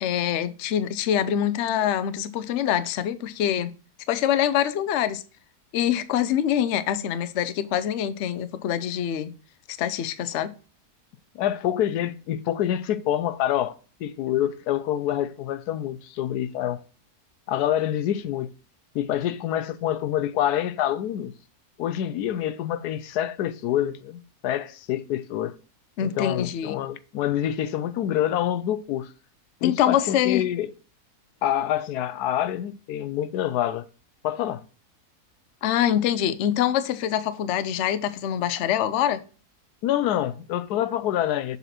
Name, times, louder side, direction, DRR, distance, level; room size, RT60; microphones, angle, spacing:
voice 1, 0.0-3.7 4.1-5.2 5.7-9.3 9.7-10.5 26.0-26.8 29.6-30.4 35.6-39.2, left 10 dB, 60° left, 0.8 m, -25 dB
voice 2, 11.3-16.8 17.5-18.5 18.9-21.3 21.8-25.5 26.0-29.1 29.6-30.7 31.4-33.9 34.2-34.6 39.8-41.6, left 11 dB, 85° left, 1.2 m, -26 dB
7.0 x 4.2 x 4.2 m
omnidirectional pair, 1.6 m